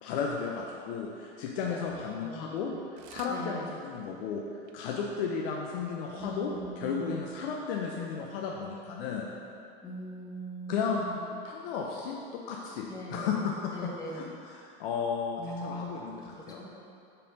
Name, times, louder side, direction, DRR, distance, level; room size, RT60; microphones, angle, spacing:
voice 1, 0.0-4.4 4.7-9.3 10.7-11.1 11.4-12.9 13.1-16.6, left 5 dB, 65° left, 0 dB, 0.7 m, -34 dB
voice 2, 1.8-2.8 3.3-3.6 6.2-7.3 9.8-11.2 12.9-13.4 13.7-14.3 15.4-16.3 16.6-16.7, equal, 10° left, -4 dB, 1.2 m, -41 dB
sound 1, 2.6-2.7 3.0-3.4 4.0-4.1 4.4-4.5 4.6-4.7 5.4-5.5, right 9 dB, 45° right, 0.5 m, -50 dB
5.5 x 4.2 x 5.2 m, 2.5 s
hypercardioid pair, 110°, 31 cm